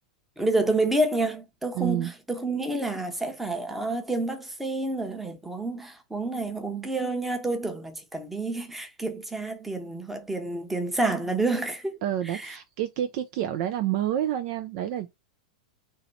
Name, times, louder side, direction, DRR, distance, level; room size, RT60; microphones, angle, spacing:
voice 1, 0.4-12.0 12.2-12.6, right 2 dB, 5° right, 0.8 m, -29 dB
voice 2, 1.8-2.1 12.0-15.1, right 11 dB, 45° right, 0.4 m, -28 dB
2.9 x 2.7 x 4.2 m
figure-of-eight pair, 90°, 4 cm